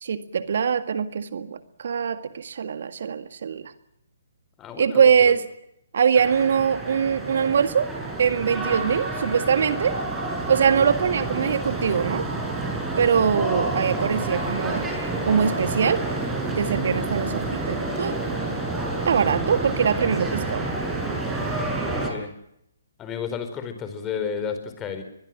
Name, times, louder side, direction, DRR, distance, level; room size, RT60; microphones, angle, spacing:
voice 1, 0.0-3.7 4.8-5.4 5.9-7.9 8.2-10.0 10.5-12.2 13.0-14.9 15.2-16.0 16.5-18.2 19.1-20.6, right 7 dB, 60° right, 11 dB, 1.8 m, -22 dB
voice 2, 4.6-5.3 17.1-17.3 22.1-22.3 23.0-25.0, left 7 dB, 20° left, 9 dB, 4.4 m, -32 dB
sound 1, 6.2-22.1, right 2 dB, 10° right, 6.8 m, -29 dB
23.5 x 22.0 x 7.6 m, 0.77 s
figure-of-eight pair, 135°, 0 cm